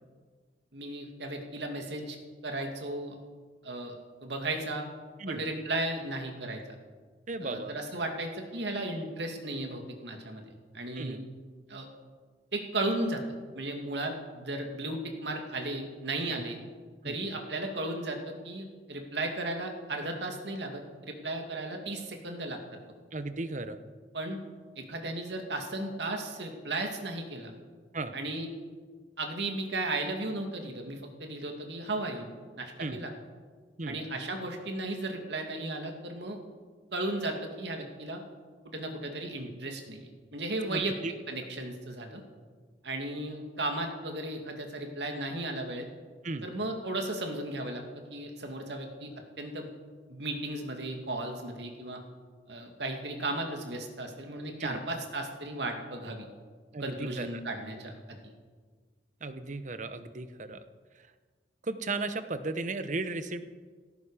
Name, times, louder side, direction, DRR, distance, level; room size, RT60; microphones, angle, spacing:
voice 1, 0.7-2.2 2.4-3.2 3.6-4.0 4.2-4.8 5.3-6.6 7.4-11.2 11.7-11.9 12.5-13.2 13.5-16.6 17.0-22.6 24.1-24.4 24.8-27.5 28.1-28.5 29.2-32.3 32.6-33.1 33.9-36.4 36.9-38.2 38.6-40.9 41.3-42.2 42.8-45.9 46.4-49.1 49.4-49.7 50.1-52.0 52.5-56.3 56.8-58.3, right 2 dB, 75° right, 3 dB, 2.4 m, -35 dB
voice 2, 7.3-7.8 10.9-11.2 16.3-16.4 17.0-17.2 23.1-23.8 27.9-28.1 32.8-33.0 33.8-34.0 40.7-41.1 46.2-46.5 54.6-54.8 56.7-57.3 59.2-60.6 61.6-63.4, right 3 dB, 45° right, 11 dB, 1.0 m, -35 dB
17.0 x 14.5 x 5.0 m, 1.5 s
head